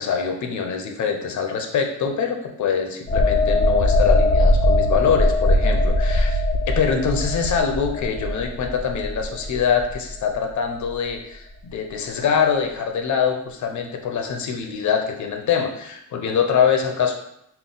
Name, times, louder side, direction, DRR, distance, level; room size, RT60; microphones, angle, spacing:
voice 1, 0.0-17.1, left 6 dB, 65° left, 4 dB, 0.6 m, -24 dB
sound 1, 3.1-10.5 10.9-11.1, left 1 dB, 20° left, 0.4 m, -20 dB
3.8 x 2.2 x 3.8 m, 0.78 s
wide cardioid pair, 135°, 31 cm